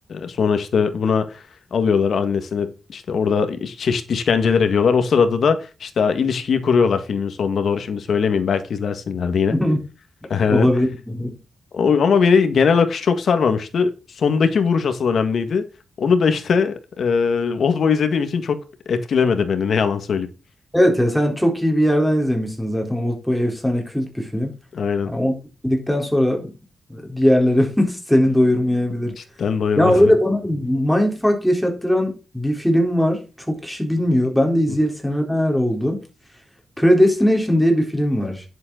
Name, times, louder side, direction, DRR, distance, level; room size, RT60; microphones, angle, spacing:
voice 1, 0.1-1.4 1.7-9.5 10.3-10.7 11.7-15.7 16.0-20.3 24.7-25.1 29.2-30.1, left 6 dB, 70° left, 1.7 m, -20 dB
voice 2, 9.5-9.8 10.5-11.4 20.7-24.5 25.1-25.3 25.6-26.5 26.9-29.1 29.8-33.2 33.5-36.0 36.8-38.4, equal, ahead, 4.0 m, -19 dB
10.5 x 7.6 x 4.0 m
wide cardioid pair, 115°, 0 cm